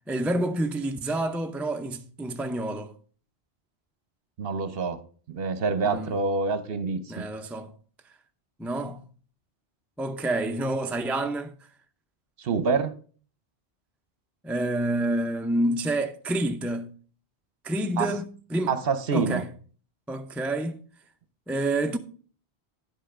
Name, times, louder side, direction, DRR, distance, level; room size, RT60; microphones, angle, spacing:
voice 1, 0.1-2.9 5.8-6.1 7.1-7.7 8.6-9.0 10.0-11.5 14.4-16.9 17.6-18.2 18.5-18.7 19.1-19.5 20.1-20.8 21.5-22.0, right 1 dB, ahead, 0.3 m, -28 dB
voice 2, 4.4-5.0 5.3-7.3 12.4-12.9 18.0-18.2 18.7-19.4, right 4 dB, 60° right, 1.0 m, -26 dB
10.5 x 5.5 x 5.0 m
omnidirectional pair, 1.1 m